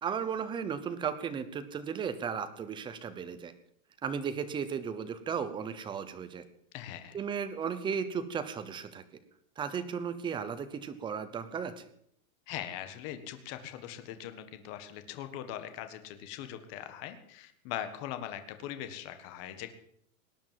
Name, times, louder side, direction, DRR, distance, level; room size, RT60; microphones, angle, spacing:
voice 1, 0.0-3.5 4.0-6.4 7.1-9.0 9.6-11.8, right 7 dB, 10° right, 11 dB, 0.8 m, -35 dB
voice 2, 6.7-7.2 12.5-19.7, left 11 dB, 35° left, 8 dB, 1.6 m, -41 dB
19.0 x 10.0 x 7.6 m, 0.69 s
supercardioid pair, 170°, 42 cm